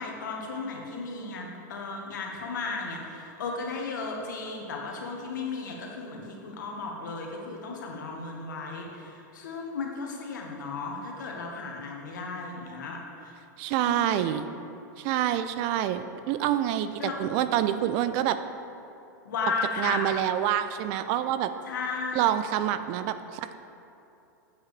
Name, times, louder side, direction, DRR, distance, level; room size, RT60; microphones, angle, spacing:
voice 1, 0.0-13.3 13.8-14.5 17.0-17.2 19.2-20.1 21.7-22.3, left 4 dB, 85° left, 0 dB, 1.4 m, -35 dB
voice 2, 13.6-14.4 15.0-18.4 19.8-21.5 22.1-23.5, right 11 dB, 50° right, 11 dB, 0.4 m, -27 dB
8.2 x 7.8 x 3.3 m, 2.8 s
hypercardioid pair, 115°, 10 cm